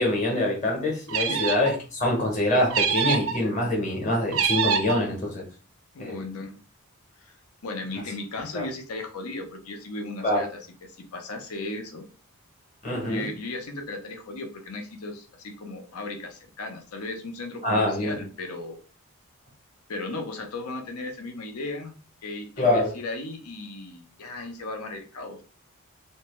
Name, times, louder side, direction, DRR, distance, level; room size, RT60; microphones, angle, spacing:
voice 1, 0.0-5.4 6.0-6.2 8.5-8.6 10.2-10.5 12.8-13.3 17.6-18.2 22.6-22.9, left 1 dB, 35° left, -1 dB, 0.9 m, -25 dB
sound 1, 1.1-1.8 2.7-3.4 4.3-5.0, right 6 dB, 70° right, 0.4 m, -25 dB
voice 2, 5.9-6.6 7.2-7.3 7.6-10.6 11.1-12.0 12.9-18.8 19.9-22.0 22.2-25.5, left 2 dB, 90° left, 4 dB, 0.7 m, -36 dB
2.6 x 2.2 x 3.0 m, 0.37 s
head